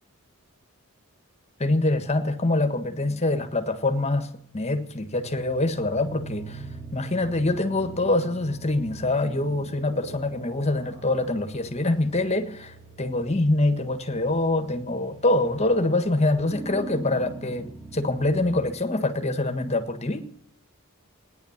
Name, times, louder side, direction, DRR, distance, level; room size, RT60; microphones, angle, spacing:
voice 1, 1.6-4.3 4.5-6.6 6.9-20.3, left 2 dB, 30° left, 1.5 m, -25 dB
sound 1, 4.7-19.3, right 3 dB, 20° right, 2.8 m, -43 dB
17.5 x 10.5 x 7.3 m
head